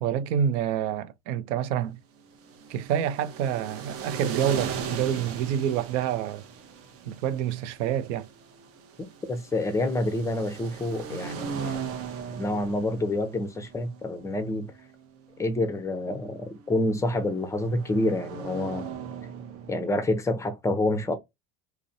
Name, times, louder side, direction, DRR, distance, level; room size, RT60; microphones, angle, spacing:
voice 1, 0.0-2.0 2.7-6.4 7.1-8.3, right 9 dB, 85° right, 0.5 m, -27 dB
sound 1, 2.3-20.2, right 7 dB, 40° right, 0.6 m, -39 dB
voice 2, 9.3-11.8 12.3-14.7 15.4-18.9 19.7-21.2, left 1 dB, 10° left, 0.5 m, -28 dB
2.5 x 2.1 x 2.5 m
supercardioid pair, 100°, 35 cm